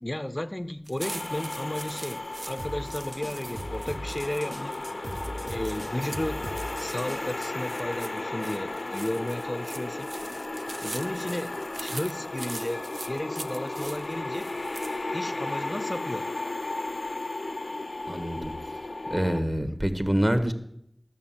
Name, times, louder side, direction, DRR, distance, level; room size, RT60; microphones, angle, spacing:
voice 1, 0.0-4.8 5.5-6.5 6.8-10.1 10.8-14.5 15.1-16.3 19.7-19.8, left 1 dB, 30° left, 11 dB, 0.4 m, -34 dB
sound 1, 0.9-15.0, right 2 dB, 70° right, 0.6 m, -43 dB
sound 2, 1.0-19.4, left 2 dB, 80° left, 0.5 m, -34 dB
sound 3, 2.6-7.5, equal, 55° right, 1.1 m, -39 dB
voice 2, 18.1-18.5 19.1-20.5, equal, 30° right, 9 dB, 1.3 m, -26 dB
13.0 x 6.8 x 7.3 m, 0.73 s
wide cardioid pair, 45°, 0 cm